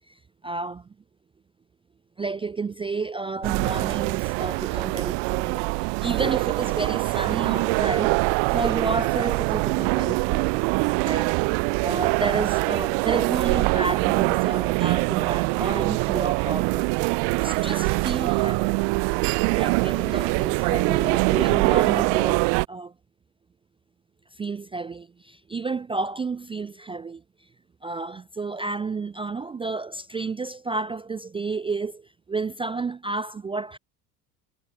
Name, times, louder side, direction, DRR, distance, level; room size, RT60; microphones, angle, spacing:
voice 1, 0.1-0.9 2.2-8.2 8.5-10.6 11.0-11.3 11.8-18.8 19.5-22.9 24.4-27.2 27.8-33.8, right 4 dB, 15° right, 0.3 m, -31 dB
sound 1, 3.4-22.7, right 35 dB, 60° right, 0.6 m, -23 dB
hypercardioid pair, 85°, 50 cm